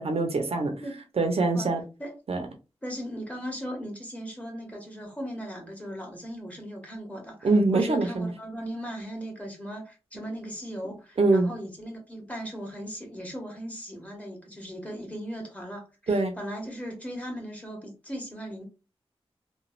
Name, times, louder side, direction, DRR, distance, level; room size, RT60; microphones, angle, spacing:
voice 1, 0.0-0.7 1.2-1.8 2.3-2.4 7.4-8.3 11.2-11.5 16.1-16.3, right 3 dB, 70° right, 0.8 m, -23 dB
voice 2, 2.8-18.6, equal, 15° left, 1.5 m, -38 dB
3.1 x 2.4 x 2.4 m
cardioid pair, 50°, 10 cm